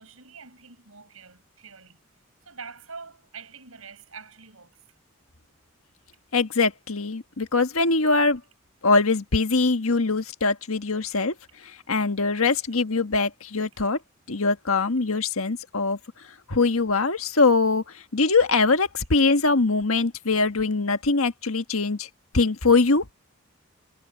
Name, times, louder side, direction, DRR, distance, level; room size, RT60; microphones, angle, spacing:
voice 1, 0.0-2.0 2.4-4.8 12.3-12.6, right 5 dB, 80° right, 6.1 m, -45 dB
voice 2, 6.3-8.4 8.8-11.3 11.9-14.0 14.3-16.0 16.5-17.8 18.1-22.1 22.3-23.0, left 3 dB, 80° left, 1.5 m, -22 dB
head